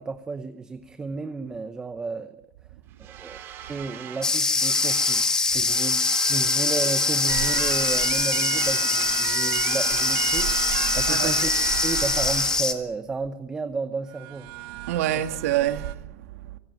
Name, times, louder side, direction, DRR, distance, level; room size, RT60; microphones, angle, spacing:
voice 1, 0.0-2.4 3.0-3.4 3.7-5.2 5.5-6.0 6.3-10.5 10.8-11.5 11.8-14.5, right 4 dB, 10° right, 0.8 m, -32 dB
sound 1, 3.0-5.3 5.6-8.2 8.4-12.7, right 10 dB, 30° right, 3.2 m, -39 dB
sound 2, 4.2-12.7, left 3 dB, 10° left, 1.5 m, -23 dB
sound 3, 7.3-12.6 14.1-15.9, right 18 dB, 50° right, 1.0 m, -32 dB
voice 2, 11.1-11.4 14.9-16.6, right 12 dB, 80° right, 2.2 m, -27 dB
25.0 x 18.0 x 9.0 m
supercardioid pair, 180°, 8 cm